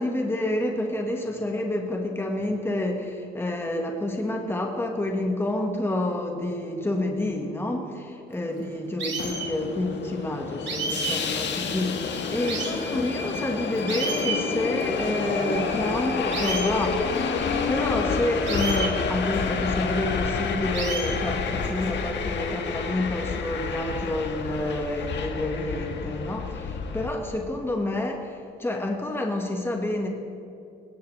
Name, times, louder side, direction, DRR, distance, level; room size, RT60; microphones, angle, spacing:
voice 1, 0.0-30.1, left 1 dB, 10° left, 1 dB, 1.8 m, -28 dB
sound 1, 9.0-9.5 10.7-11.2 11.7-11.8 12.5-12.7 13.4-13.5 13.9-14.4 14.8-14.9 15.3-15.4 16.3-16.7 17.1-17.2 18.5-18.9 19.3-19.4 20.7-21.1 21.6-21.9, right 5 dB, 65° right, 3.3 m, -31 dB
Subway metro underground, 9.2-27.1, left 5 dB, 65° left, 1.6 m, -29 dB
19.5 x 18.5 x 3.4 m, 2.6 s
cardioid pair, 90°, 20 cm